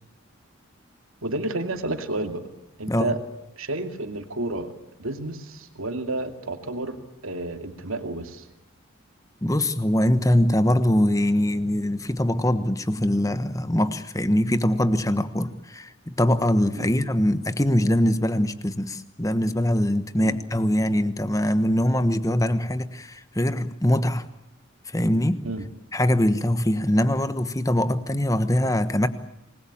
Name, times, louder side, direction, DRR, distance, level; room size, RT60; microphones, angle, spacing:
voice 1, 1.2-2.4 2.8-3.2 3.6-4.7 5.0-7.0 7.2-8.5 16.8-16.9 20.2-20.4 25.4-25.7, right 2 dB, 85° right, 6 dB, 2.6 m, -30 dB
voice 2, 9.4-24.2 24.9-25.4 25.9-29.1, left 1 dB, 15° left, 12 dB, 1.2 m, -22 dB
27.0 x 20.5 x 8.8 m, 0.83 s
head